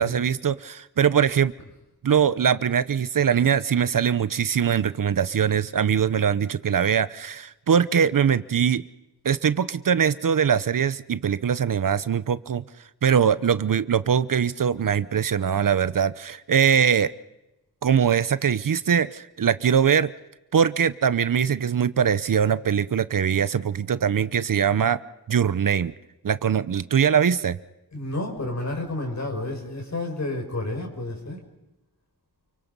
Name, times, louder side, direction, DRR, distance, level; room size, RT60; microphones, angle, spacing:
voice 1, 0.0-1.5 2.0-8.8 9.2-12.6 13.0-17.1 17.8-20.1 20.5-25.0 25.3-25.9 26.2-27.6, right 7 dB, 55° right, 15 dB, 0.8 m, -22 dB
voice 2, 27.9-31.4, left 2 dB, 45° left, 2 dB, 5.9 m, -30 dB
29.0 x 23.5 x 5.4 m, 0.98 s
wide cardioid pair, 135°, 38 cm